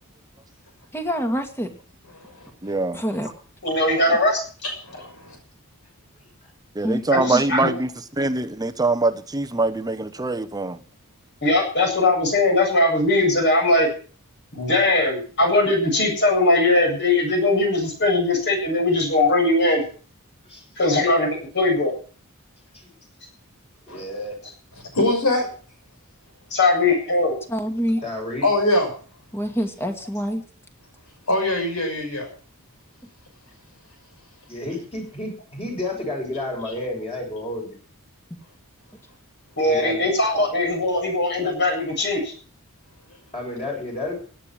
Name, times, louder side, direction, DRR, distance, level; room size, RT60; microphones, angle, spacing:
voice 1, 0.9-1.7 2.9-3.3 6.8-7.0 7.3-7.4 27.5-28.0 29.3-30.4, equal, 10° left, 2.1 m, -25 dB
voice 2, 2.6-3.0 6.7-7.9 8.2-10.8, right 2 dB, 15° right, 0.9 m, -23 dB
voice 3, 3.6-4.4 7.1-7.7 11.4-13.9 14.6-19.8 20.8-21.9 26.5-27.4 39.6-42.3, left 2 dB, 50° left, 7.9 m, -20 dB
voice 4, 4.9-5.2 23.9-24.0 24.9-25.5 28.4-28.9 31.3-32.3, left 1 dB, 80° left, 6.2 m, -22 dB
voice 5, 23.9-24.4 28.0-28.5 34.5-37.7 39.7-40.1 43.3-44.1, left 1 dB, 25° left, 6.9 m, -31 dB
17.0 x 10.5 x 6.2 m
head